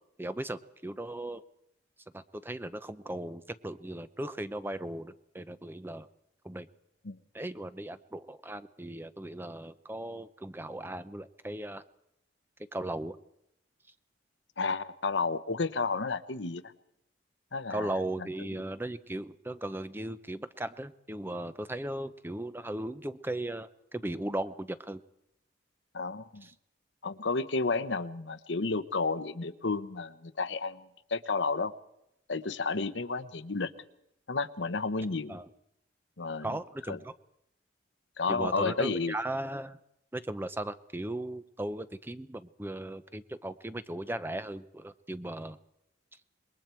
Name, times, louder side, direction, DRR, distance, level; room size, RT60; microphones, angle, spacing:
voice 1, 0.2-1.4 2.1-6.1 6.4-6.7 7.3-11.8 12.7-13.2 17.7-25.0 26.4-26.5 35.3-35.5 36.4-37.1 38.3-39.8 40.1-45.6, right 1 dB, 10° right, 12 dB, 0.6 m, -37 dB
voice 2, 14.6-16.6 17.5-18.0 25.9-26.5 27.0-31.7 32.3-33.7 34.3-35.4 36.2-36.6 36.9-37.0 38.2-39.2, left 4 dB, 75° left, 11 dB, 0.9 m, -31 dB
26.5 x 21.5 x 4.5 m, 0.82 s
head